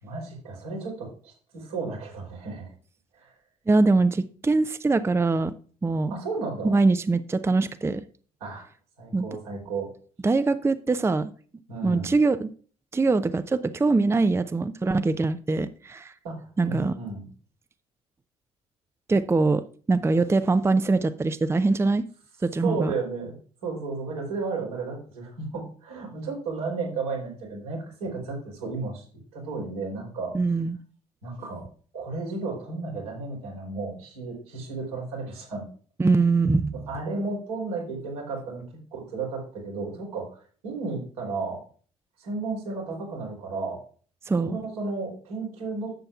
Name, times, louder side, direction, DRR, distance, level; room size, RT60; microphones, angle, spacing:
voice 1, 0.0-2.7 3.1-3.3 6.1-6.7 8.4-8.7 9.0-9.9 11.7-12.1 16.2-17.2 22.6-23.3 23.6-29.0 29.3-30.3 31.2-31.7 31.9-35.7 36.7-41.6 42.2-43.8 44.3-45.9, right 3 dB, 80° right, 3.4 m, -33 dB
voice 2, 3.7-5.5 5.8-6.1 6.6-8.0 9.1-9.3 10.2-11.3 11.8-12.5 12.9-16.1 16.6-17.0 19.1-19.6 19.9-22.1 22.4-22.9 30.3-30.8 36.0-36.9 44.3-44.6, right 3 dB, 15° right, 0.5 m, -23 dB
11.5 x 7.6 x 2.4 m
figure-of-eight pair, 50°, 18 cm